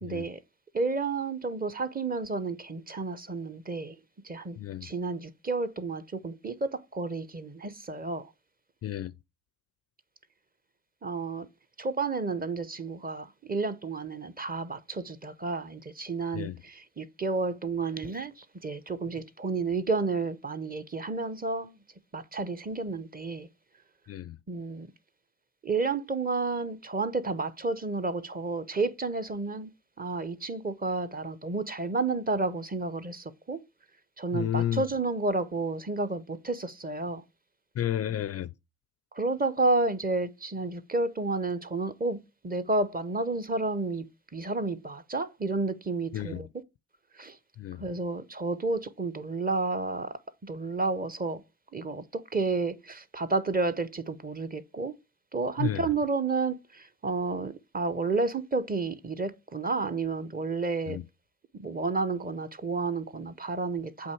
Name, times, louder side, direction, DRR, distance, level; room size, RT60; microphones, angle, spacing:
voice 1, 0.0-0.4 0.7-4.0 4.2-8.3 11.0-11.5 11.8-21.8 22.1-23.5 24.5-24.9 25.6-29.7 30.0-33.6 34.2-37.2 39.1-44.1 44.3-46.5 47.2-47.4 47.8-51.4 51.7-54.9 55.3-61.0 61.5-64.1, right 3 dB, 20° right, 0.7 m, -31 dB
voice 2, 4.6-4.9 8.8-9.1 16.3-16.6 24.1-24.4 34.3-34.8 37.8-38.5 46.1-46.4 47.6-47.8 55.6-55.9 60.9-61.0, left 11 dB, 35° left, 0.4 m, -31 dB
8.0 x 2.8 x 4.5 m
hypercardioid pair, 55°, 44 cm